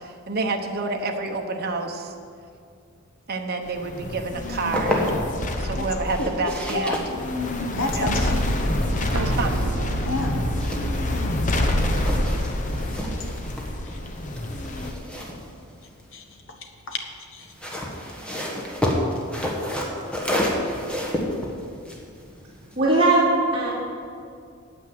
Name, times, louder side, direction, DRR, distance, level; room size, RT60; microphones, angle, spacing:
voice 1, 0.0-2.1 3.3-5.0 5.5-7.1 7.9-8.3 9.1-9.6, right 3 dB, 50° right, 2 dB, 1.0 m, -28 dB
sound 1, 3.7-14.9, left 1 dB, 40° left, 1.0 m, -27 dB
sound 2, 4.5-5.5 6.0-11.4 11.7-16.4 17.4-22.9, left 1 dB, 5° left, 1.6 m, -30 dB
voice 2, 7.7-8.4 10.0-10.3 15.2-15.3 16.1-17.0 17.3-17.5, left 2 dB, 65° left, 4 dB, 1.3 m, -31 dB
sound 3, 9.2-14.8 15.1-15.2, equal, 75° right, 0.8 m, -32 dB
voice 3, 22.8-23.7, right 2 dB, 25° right, -9 dB, 2.7 m, -19 dB
9.1 x 9.0 x 7.7 m, 2.3 s
head